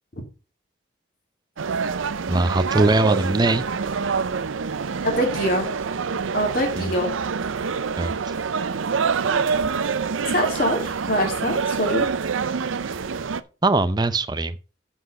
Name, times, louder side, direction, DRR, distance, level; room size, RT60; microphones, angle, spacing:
sound 1, 1.6-13.4, right 5 dB, 85° right, 0.5 m, -26 dB
voice 1, 2.3-3.6 6.8-6.9 8.0-8.3 12.9-13.0 13.6-14.6, right 2 dB, 20° right, 0.5 m, -21 dB
voice 2, 5.0-5.7 6.3-7.1 9.2-9.7 10.3-12.1, equal, 45° left, 2.5 m, -24 dB
7.8 x 6.0 x 5.4 m
head